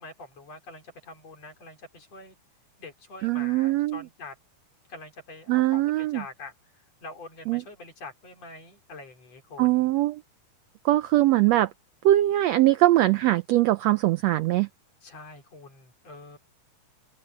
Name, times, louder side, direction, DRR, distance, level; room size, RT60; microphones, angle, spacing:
voice 1, 0.0-2.4 2.8-4.4 4.9-6.5 7.0-9.7 15.0-16.4, left 3 dB, 55° left, 5.5 m, -44 dB
voice 2, 3.2-4.0 5.5-6.2 7.5-7.6 9.6-10.2 10.8-11.7 12.0-14.7, right 15 dB, 85° right, 1.5 m, -21 dB
omnidirectional pair, 3.7 m